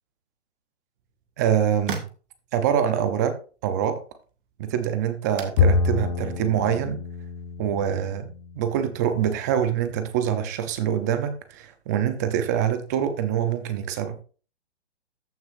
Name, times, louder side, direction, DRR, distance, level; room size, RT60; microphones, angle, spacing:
sound 1, 0.9-8.2, right 7 dB, 45° right, 1.6 m, -44 dB
voice 1, 1.4-2.1 2.5-3.4 3.6-4.0 4.6-7.0 7.6-8.3 8.6-14.2, right 9 dB, 15° right, 10 dB, 0.5 m, -25 dB
Bowed string instrument, 5.6-9.0, left 4 dB, 35° left, 1.0 m, -26 dB
14.0 x 6.3 x 2.5 m, 0.37 s
hypercardioid pair, 155°, 35 cm